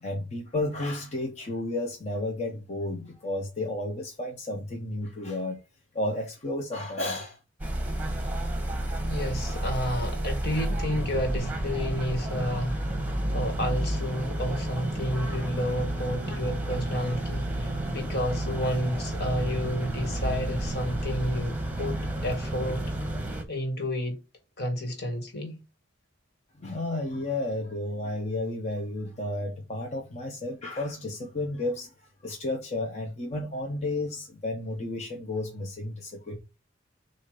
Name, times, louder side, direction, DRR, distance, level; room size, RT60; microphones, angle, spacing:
voice 1, 0.0-5.6 5.9-7.4 26.6-31.9 32.2-36.4, left 2 dB, 35° left, 1.1 m, -32 dB
sound 1, 7.6-23.4, right 1 dB, 10° right, 1.3 m, -31 dB
voice 2, 9.1-13.0 13.3-22.8 23.3-24.2 24.6-25.6, equal, 60° left, 2.0 m, -31 dB
7.2 x 2.8 x 5.1 m
head